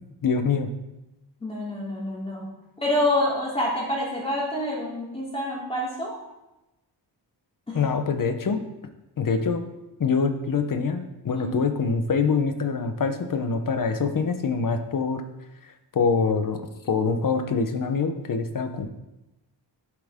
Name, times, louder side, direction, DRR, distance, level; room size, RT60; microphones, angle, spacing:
voice 1, 0.2-0.7 7.7-8.6 9.2-9.6 10.0-15.2 15.6-18.9, left 5 dB, 50° left, 7 dB, 1.0 m, -25 dB
voice 2, 1.4-2.5 2.8-6.2 7.7-7.8 11.3-11.5, left 1 dB, 15° left, -5 dB, 3.3 m, -27 dB
12.0 x 7.8 x 3.7 m, 0.99 s
wide cardioid pair, 150°, 43 cm